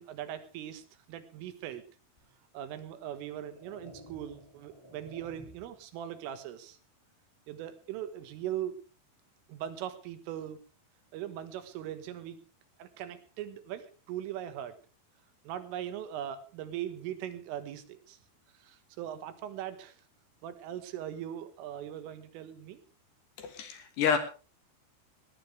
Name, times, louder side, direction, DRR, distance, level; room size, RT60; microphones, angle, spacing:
voice 1, 0.0-1.8 2.5-6.8 7.5-8.8 9.5-10.6 11.1-12.4 12.8-14.8 15.5-18.2 18.6-20.0 20.4-22.8, right 11 dB, 85° right, 11 dB, 4.1 m, -40 dB
sound 1, 2.2-2.3 3.1-5.8, equal, 5° left, 5.7 m, -53 dB
voice 2, 23.4-24.2, left 7 dB, 65° left, 8 dB, 3.3 m, -29 dB
19.0 x 18.0 x 3.4 m, 0.35 s
omnidirectional pair, 5.7 m